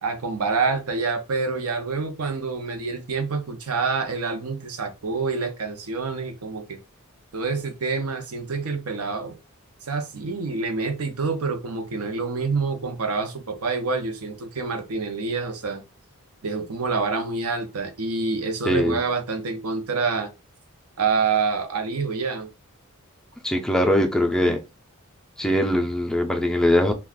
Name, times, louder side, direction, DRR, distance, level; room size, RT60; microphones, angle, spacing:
voice 1, 0.0-6.8 7.3-9.4 9.9-15.8 16.4-20.3 21.0-22.5, right 4 dB, 85° right, 0.6 m, -27 dB
voice 2, 18.7-19.0 23.4-24.6 25.4-26.9, left 1 dB, 5° left, 0.4 m, -21 dB
2.4 x 2.3 x 3.5 m
head